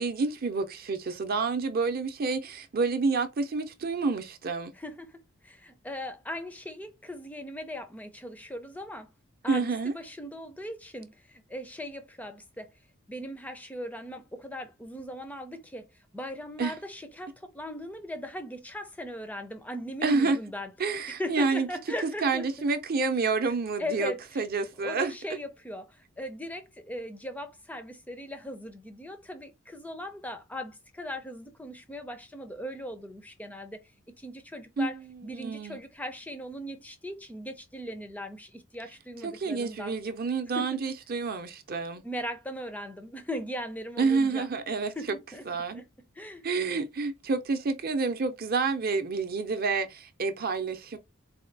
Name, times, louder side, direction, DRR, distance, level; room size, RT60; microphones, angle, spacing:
voice 1, 0.0-4.7 9.5-9.9 16.6-16.7 20.0-20.4 20.8-21.7 22.2-25.1 34.8-35.0 35.3-35.8 39.2-42.0 44.0-44.9 45.5-45.8 46.4-51.0, right 4 dB, 45° right, 0.6 m, -28 dB
voice 2, 4.7-9.1 9.4-12.7 13.1-20.7 21.1-22.4 23.8-24.5 24.8-33.8 34.1-40.0 40.6-40.8 42.0-44.5 45.0-45.5 45.7-45.9 46.1-46.4, left 1 dB, 5° left, 0.5 m, -39 dB
4.2 x 2.2 x 3.9 m
head